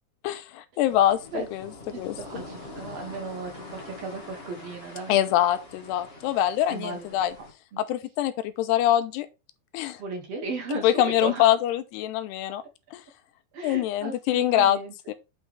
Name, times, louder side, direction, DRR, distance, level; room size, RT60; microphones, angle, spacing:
voice 1, 0.2-1.2 1.5-1.7 2.0-2.1 5.1-7.3 7.9-9.3 9.7-10.0 10.8-12.6 12.9-13.0 13.6-14.8 15.1-15.2, left 12 dB, 90° left, 2.8 m, -24 dB
sound 1, 0.9-7.5, left 2 dB, 35° left, 0.9 m, -44 dB
voice 2, 1.9-5.2 6.7-7.2 7.7-7.8 10.0-11.6 12.6-12.7 13.5-14.9, right 3 dB, 45° right, 2.6 m, -36 dB
9.0 x 5.4 x 3.4 m
omnidirectional pair, 4.8 m